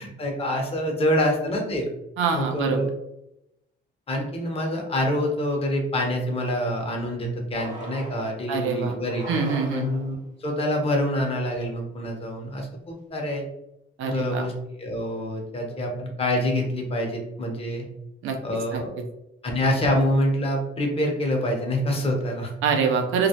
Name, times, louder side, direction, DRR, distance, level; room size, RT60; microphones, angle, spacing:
voice 1, 0.0-1.8 2.3-2.9 4.1-9.3 9.7-10.2 10.4-13.4 14.0-14.5 14.8-17.8 18.4-18.9 19.4-22.5, left 1 dB, 30° left, 1 dB, 0.7 m, -26 dB
voice 2, 2.2-2.8 8.5-8.9 9.3-9.9 14.0-14.5 18.2-18.4 18.7-18.8 22.6-23.3, right 5 dB, 90° right, 4 dB, 0.5 m, -24 dB
sound 1, 7.6-8.4 9.0-10.2, right 1 dB, 40° right, 0.7 m, -39 dB
2.3 x 2.0 x 2.7 m, 0.85 s
cardioid pair, 90°, 20 cm